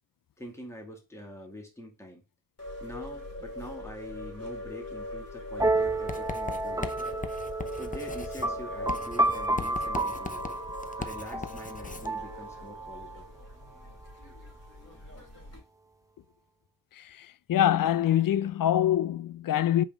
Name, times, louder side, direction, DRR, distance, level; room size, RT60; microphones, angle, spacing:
voice 1, 0.4-2.2 2.8-7.1 7.8-10.6 11.0-13.2, equal, 10° left, 2.2 m, -45 dB
sound 1, 2.6-15.6, left 1 dB, 45° left, 3.7 m, -42 dB
sound 2, 5.6-13.2, right 2 dB, 10° right, 0.9 m, -31 dB
Writing, 6.1-12.1, left 4 dB, 25° left, 0.8 m, -40 dB
voice 2, 17.0-19.8, left 11 dB, 70° left, 0.5 m, -25 dB
5.3 x 5.2 x 3.5 m
cardioid pair, 60°, 34 cm